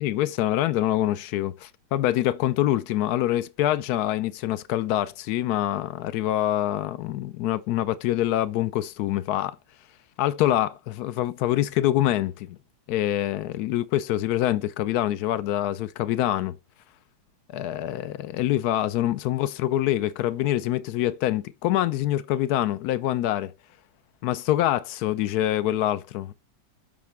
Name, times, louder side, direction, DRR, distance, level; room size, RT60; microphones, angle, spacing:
voice 1, 0.0-9.6 10.2-12.6 12.9-16.6 17.5-23.5 24.2-26.3, left 13 dB, 75° left, 0.8 m, -25 dB
7.3 x 5.9 x 3.4 m
omnidirectional pair, 2.1 m